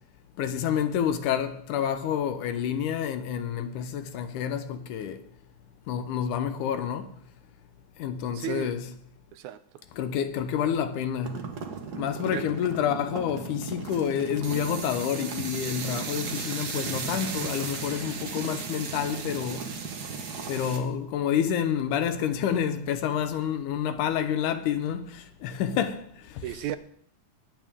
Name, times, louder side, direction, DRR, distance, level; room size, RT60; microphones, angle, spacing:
voice 1, 0.4-5.2 5.9-7.1 8.0-8.8 10.0-11.4 12.0-19.7 20.5-26.4, left 9 dB, 80° left, 2.3 m, -28 dB
voice 2, 8.3-8.8 9.3-9.6 12.3-12.5 26.4-26.8, right 12 dB, 80° right, 1.9 m, -33 dB
sound 1, 11.2-20.8, right 5 dB, 60° right, 1.0 m, -35 dB
21.0 x 8.8 x 3.6 m
omnidirectional pair, 3.6 m